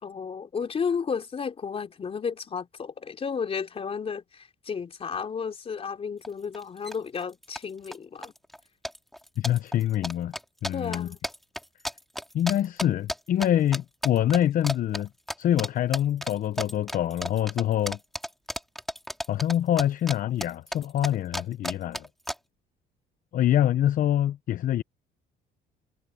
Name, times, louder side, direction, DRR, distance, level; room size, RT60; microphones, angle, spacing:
voice 1, 0.0-8.3 10.7-11.2, left 6 dB, 35° left, 3.8 m, -33 dB
sound 1, 6.2-6.3 6.5-7.0 7.2-8.0 8.2-8.6 8.8-13.5 13.7-14.4 14.6-15.0 15.3-15.7 15.9-20.2 20.4-22.3, equal, ahead, 3.0 m, -33 dB
voice 2, 9.4-10.3 10.6-11.1 12.3-15.1 15.4-18.0 19.3-22.1 23.3-24.8, left 11 dB, 55° left, 0.7 m, -25 dB
cardioid pair, 110°, 17 cm